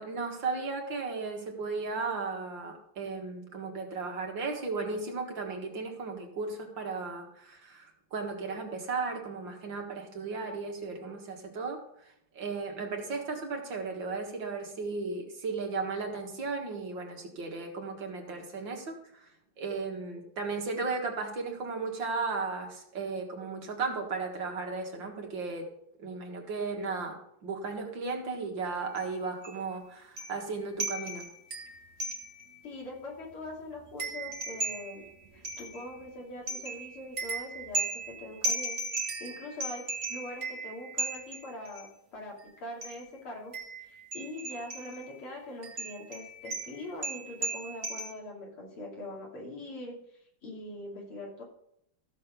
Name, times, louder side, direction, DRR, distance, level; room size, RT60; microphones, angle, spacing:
voice 1, 0.0-11.8 12.3-19.0 19.6-25.7 26.0-31.3, right 4 dB, 60° right, 2 dB, 2.4 m, -35 dB
sound 1, 28.9-29.1 29.4-29.6 30.2-30.5 30.8-32.6 33.0-33.1 33.3-36.0 36.5-41.9 42.8-43.0 43.5-45.1 45.6-48.1, right 2 dB, 40° right, 1.9 m, -36 dB
voice 2, 32.6-35.0 35.3-50.0 50.4-51.4, left 1 dB, 80° left, -2 dB, 3.7 m, -43 dB
14.5 x 6.6 x 5.2 m, 0.73 s
omnidirectional pair, 2.4 m